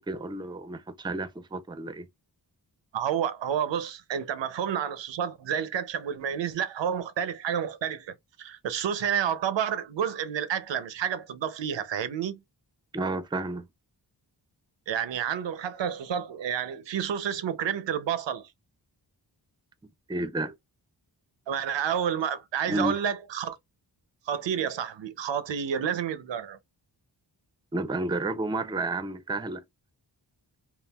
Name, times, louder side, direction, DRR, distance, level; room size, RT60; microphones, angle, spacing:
voice 1, 0.0-2.1 12.9-13.7 20.1-20.5 22.7-23.0 27.7-29.6, right 2 dB, 10° right, 0.4 m, -31 dB
voice 2, 2.9-12.4 14.9-18.5 21.5-23.6 24.3-26.6, right 8 dB, 85° right, 0.6 m, -30 dB
3.6 x 2.3 x 2.2 m
wide cardioid pair, 70°, 43 cm